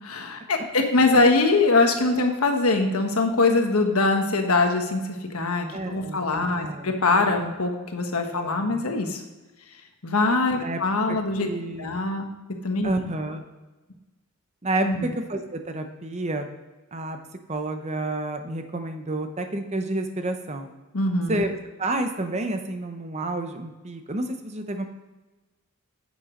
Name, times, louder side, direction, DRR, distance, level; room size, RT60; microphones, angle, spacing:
voice 1, 0.0-9.2 10.0-11.5 11.8-12.3 12.6-12.9 14.8-15.1 20.9-21.4, left 3 dB, 85° left, 4 dB, 1.3 m, -23 dB
voice 2, 5.7-6.9 8.3-8.9 10.6-10.8 11.1-12.0 12.8-13.4 14.6-16.5 16.9-17.2 17.5-20.7 21.3-21.5 21.8-24.8, right 2 dB, 30° right, 6 dB, 0.8 m, -30 dB
9.4 x 7.1 x 3.8 m, 1.1 s
head